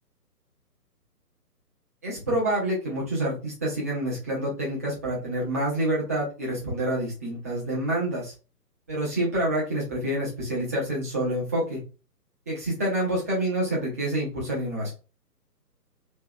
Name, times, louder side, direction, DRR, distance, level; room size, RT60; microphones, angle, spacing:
voice 1, 2.0-8.3 8.9-11.8 12.5-14.9, right 1 dB, 10° right, -6 dB, 0.6 m, -27 dB
3.2 x 3.1 x 3.5 m, 0.33 s
figure-of-eight pair, 135°, 48 cm